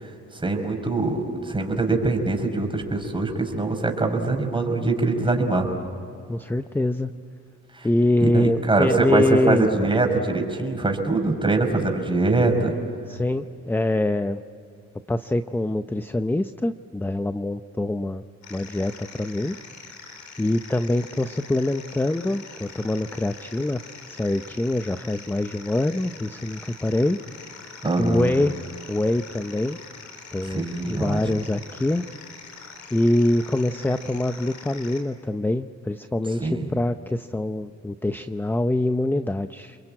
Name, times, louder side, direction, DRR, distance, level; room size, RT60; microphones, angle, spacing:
voice 1, 0.3-5.7 7.7-7.9 8.2-12.7 27.8-28.3 30.5-31.2 36.4-36.7, right 3 dB, 15° right, 3 dB, 5.3 m, -23 dB
voice 2, 6.3-7.1 7.8-9.8 13.1-14.4 15.1-18.2 18.5-19.6 20.4-23.8 24.1-27.2 28.0-28.6 28.9-29.8 30.3-32.0 32.9-39.8, left 1 dB, 5° left, 11 dB, 0.6 m, -24 dB
sound 1, 18.4-35.0, left 5 dB, 70° left, 4.2 m, -43 dB
29.5 x 22.0 x 8.7 m, 2.5 s
cardioid pair, 90°, 30 cm